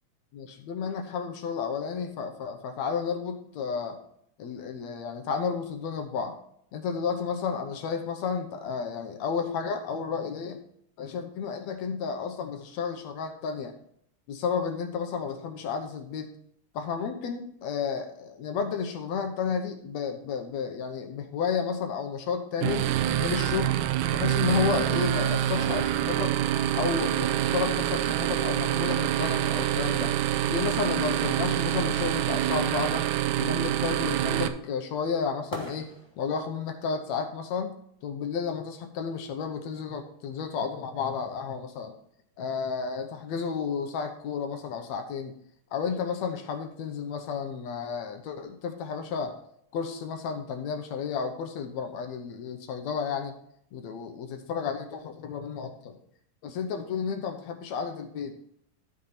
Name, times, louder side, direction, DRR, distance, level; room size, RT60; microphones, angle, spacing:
voice 1, 0.3-4.0 4.4-6.3 6.7-10.6 11.0-13.8 14.3-16.3 16.7-22.9 23.2-23.8 24.1-26.4 26.7-30.1 30.5-33.1 33.4-35.9 36.2-37.8 38.0-41.9 42.4-45.3 45.7-49.4 49.7-53.3 53.7-56.0 56.4-58.4, left 6 dB, 70° left, 5 dB, 1.9 m, -32 dB
sound 1, 22.6-34.5, right 12 dB, 80° right, 2.0 m, -26 dB
sound 2, 28.9-37.2, equal, 5° right, 1.9 m, -49 dB
13.5 x 4.9 x 4.2 m, 0.69 s
omnidirectional pair, 3.7 m